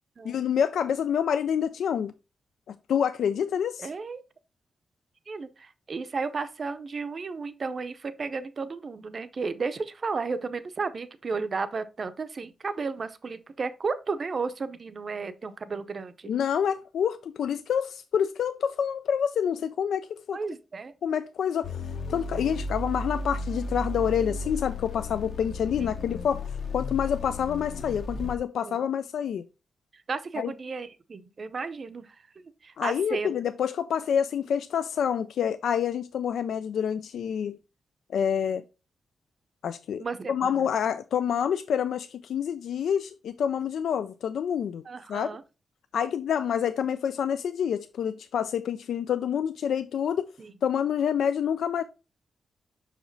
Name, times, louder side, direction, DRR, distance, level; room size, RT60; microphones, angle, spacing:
voice 1, 0.2-2.1 2.7-3.9 16.3-20.4 21.0-21.8 22.1-26.4 26.7-29.4 30.4-30.5 32.8-37.6 38.1-38.6 39.6-44.8 45.1-45.3 45.9-50.3 50.6-51.8, left 8 dB, 85° left, 0.4 m, -27 dB
voice 2, 3.8-4.2 5.3-16.3 20.3-20.9 28.6-28.8 30.1-32.1 32.6-33.3 40.0-40.5 44.9-45.4 50.4-50.5, right 4 dB, 35° right, 0.6 m, -33 dB
sound 1, 21.6-28.4, left 2 dB, 50° left, 0.9 m, -34 dB
6.1 x 5.0 x 3.9 m
wide cardioid pair, 175°, 0 cm